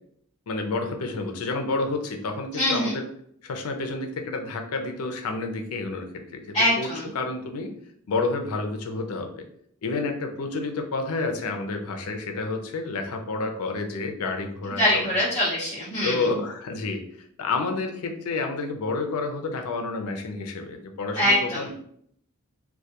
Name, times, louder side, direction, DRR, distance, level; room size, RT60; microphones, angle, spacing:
voice 1, 0.5-3.0 3.4-6.9 7.1-7.7 8.1-9.4 9.8-15.0 16.0-17.0 17.4-21.7, left 3 dB, 85° left, 5 dB, 0.5 m, -29 dB
voice 2, 2.6-3.0 6.5-7.1 14.8-16.3 21.1-21.7, left 1 dB, 20° left, -10 dB, 0.7 m, -23 dB
2.2 x 2.2 x 2.8 m, 0.67 s
head